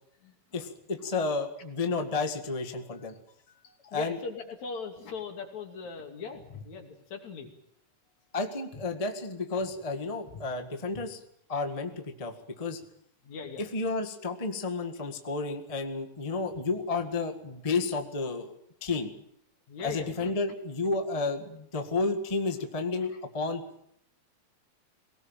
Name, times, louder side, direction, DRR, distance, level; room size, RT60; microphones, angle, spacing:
voice 1, 0.5-3.1 3.9-4.2 8.3-11.2 11.5-12.8 13.6-18.5 18.8-19.1 19.8-23.6, left 3 dB, 15° left, 6 dB, 1.3 m, -31 dB
voice 2, 3.6-7.5 13.2-13.6 19.7-20.3, left 5 dB, 65° left, 4 dB, 4.1 m, -40 dB
22.0 x 18.5 x 8.9 m, 0.71 s
omnidirectional pair, 3.4 m